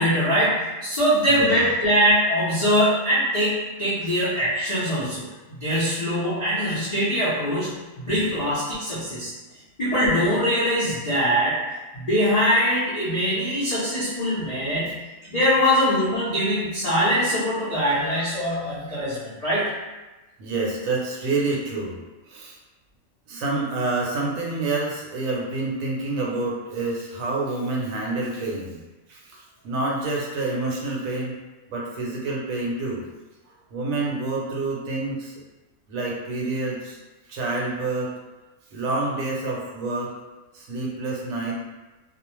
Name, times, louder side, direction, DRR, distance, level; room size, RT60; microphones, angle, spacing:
voice 1, 0.0-9.3 9.8-11.6 11.9-15.0 15.3-19.7, equal, 55° left, -10 dB, 0.4 m, -22 dB
voice 2, 1.3-1.7 4.0-4.1 20.4-22.0 22.3-22.6 23.3-28.8 29.1-31.3 31.7-33.0 33.7-35.3 35.9-37.0 37.3-38.1 38.7-40.1 40.5-41.5, right 3 dB, 70° right, -3 dB, 1.0 m, -28 dB
2.4 x 2.0 x 3.0 m, 1.1 s
omnidirectional pair, 1.5 m